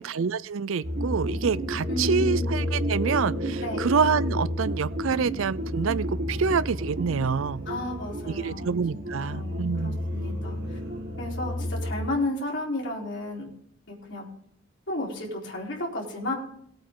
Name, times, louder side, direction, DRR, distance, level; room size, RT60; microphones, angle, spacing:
voice 1, 0.0-7.6 8.3-10.0, right 5 dB, 80° right, 18 dB, 0.5 m, -27 dB
sound 1, 0.8-12.1, equal, 55° right, 2.4 m, -31 dB
voice 2, 1.9-2.5 3.6-3.8 7.6-10.8 11.2-13.5 13.9-14.3 14.9-16.3, left 1 dB, 60° left, -3 dB, 4.1 m, -33 dB
17.5 x 8.8 x 3.8 m, 0.68 s
head